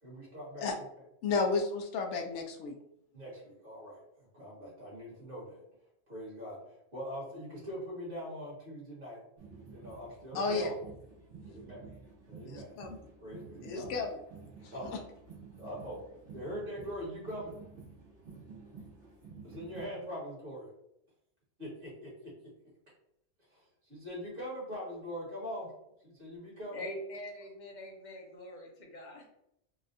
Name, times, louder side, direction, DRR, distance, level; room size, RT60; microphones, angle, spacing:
voice 1, 0.0-0.7 1.0-1.1 3.1-5.6 6.1-9.2 9.7-10.9 11.5-11.8 12.3-12.7 13.2-13.9 14.6-14.9 15.6-16.0 16.3-17.6 19.4-20.7 21.6-22.5 23.5-25.7 26.0-26.8, equal, 50° right, -6 dB, 1.8 m, -42 dB
voice 2, 1.2-2.7 10.3-10.7 12.5-13.0 13.6-14.1, left 4 dB, 80° left, 3 dB, 0.9 m, -32 dB
sound 1, 9.4-19.9, right 4 dB, 75° right, 1.7 m, -51 dB
voice 3, 26.7-29.3, left 1 dB, 45° left, 0 dB, 0.7 m, -44 dB
4.0 x 2.3 x 2.6 m, 0.79 s
omnidirectional pair, 1.2 m